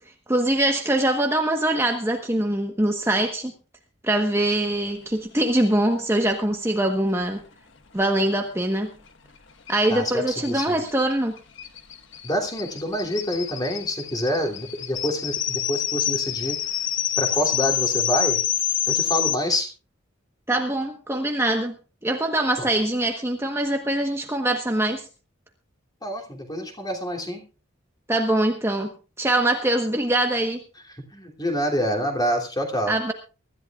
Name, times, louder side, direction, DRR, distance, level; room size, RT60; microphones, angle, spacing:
voice 1, 0.3-3.5 4.0-7.4 7.9-8.9 9.7-11.4 20.5-21.7 22.0-25.1 28.1-28.9 29.2-30.6 32.9-33.1, right 1 dB, 10° right, 3 dB, 1.2 m, -23 dB
sound 1, 9.7-9.8 10.0-10.1 10.4-19.3, left 10 dB, 65° left, 1.4 m, -27 dB
voice 2, 9.9-10.8 12.2-16.8 17.2-18.4 18.9-19.7 22.6-22.7 26.0-27.4 30.9-32.9, equal, 20° left, 2 dB, 3.0 m, -27 dB
24.0 x 13.5 x 2.4 m, 0.33 s
head